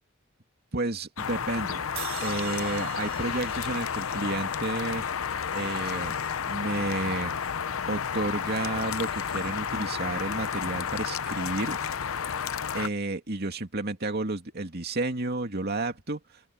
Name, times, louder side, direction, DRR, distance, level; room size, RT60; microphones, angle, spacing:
voice 1, 0.7-1.8 2.2-5.0 5.5-6.1 6.5-7.3 7.9-11.8 12.7-16.2, right 2 dB, 50° right, 2.6 m, -31 dB
sound 1, 1.2-12.9, left 7 dB, 85° left, 0.7 m, -31 dB
sound 2, 2.0-5.2, right 11 dB, 80° right, 3.7 m, -42 dB
open air
head